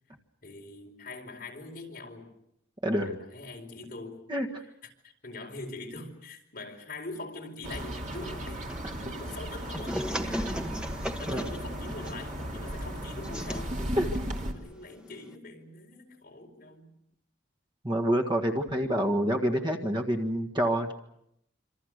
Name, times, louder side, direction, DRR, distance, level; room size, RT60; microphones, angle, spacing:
voice 1, 0.4-2.3 3.0-4.2 4.8-8.7 9.0-10.1 10.9-13.7 14.1-16.9, left 2 dB, 45° left, 1 dB, 4.7 m, -43 dB
voice 2, 2.8-3.2 4.3-4.6 10.2-10.7 11.3-11.5 14.0-14.1 17.8-20.9, equal, 25° right, 3 dB, 1.7 m, -28 dB
sound 1, 7.6-14.5, equal, 40° right, 2.8 m, -36 dB
sound 2, 8.7-15.3, equal, 5° right, 1.2 m, -38 dB
27.0 x 26.0 x 6.6 m, 0.76 s
head